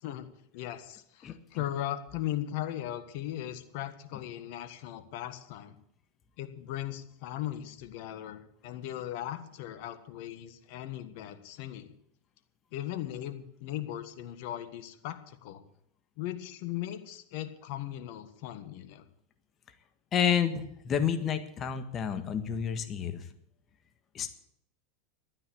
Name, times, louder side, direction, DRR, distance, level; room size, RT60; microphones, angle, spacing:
voice 1, 0.5-5.8 6.4-11.9 12.7-15.6 16.2-19.0, left 12 dB, 60° left, 10 dB, 1.5 m, -38 dB
voice 2, 20.1-23.2 24.1-24.3, left 8 dB, 35° left, 9 dB, 1.6 m, -29 dB
12.0 x 9.7 x 8.6 m, 0.70 s
hypercardioid pair, 95°, 0 cm